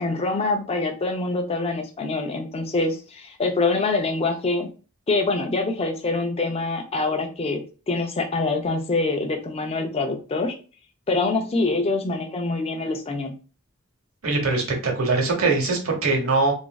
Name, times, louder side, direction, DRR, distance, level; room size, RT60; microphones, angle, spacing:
voice 1, 0.0-4.7 5.1-7.6 7.9-10.5 11.1-13.3, left 3 dB, 30° left, 4 dB, 0.4 m, -25 dB
voice 2, 14.2-16.5, right 3 dB, 75° right, 2 dB, 0.9 m, -22 dB
3.0 x 2.5 x 2.3 m, 0.35 s
head